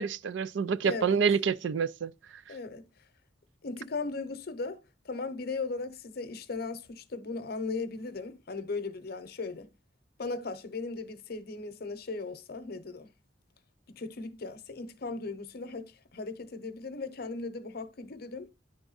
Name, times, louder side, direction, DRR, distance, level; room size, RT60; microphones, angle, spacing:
voice 1, 0.0-2.1, right 6 dB, 85° right, 0.4 m, -27 dB
voice 2, 0.8-1.2 2.5-2.9 3.6-9.7 10.2-13.1 13.9-18.5, left 3 dB, 60° left, 0.8 m, -37 dB
10.0 x 3.5 x 4.0 m
head